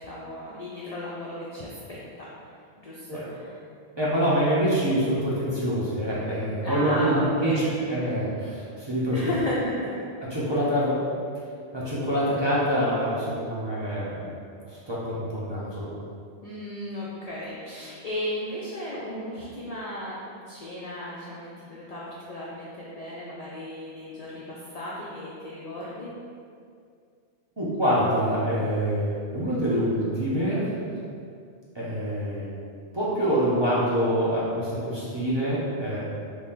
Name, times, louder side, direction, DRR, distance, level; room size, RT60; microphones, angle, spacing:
voice 1, 0.0-2.3 2.8-3.5 6.6-7.6 9.1-10.0 16.4-26.1, left 1 dB, 85° left, -7 dB, 0.3 m, -34 dB
voice 2, 4.0-7.5 7.9-9.3 10.3-11.0 11.7-14.3 14.7-15.9 27.6-30.9 31.7-32.5 32.9-36.0, equal, 30° right, -9 dB, 0.5 m, -25 dB
2.9 x 2.7 x 3.6 m, 2.3 s
omnidirectional pair, 1.2 m